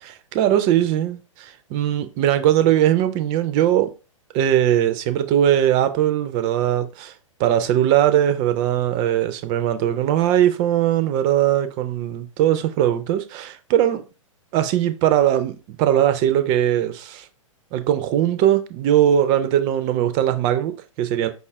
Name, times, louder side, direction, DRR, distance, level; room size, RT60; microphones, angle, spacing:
voice 1, 0.0-3.9 4.3-7.1 7.4-14.1 14.5-17.3 17.7-21.3, right 11 dB, 25° right, 0.4 m, -20 dB
5.2 x 2.4 x 3.3 m
figure-of-eight pair, 105°, 17 cm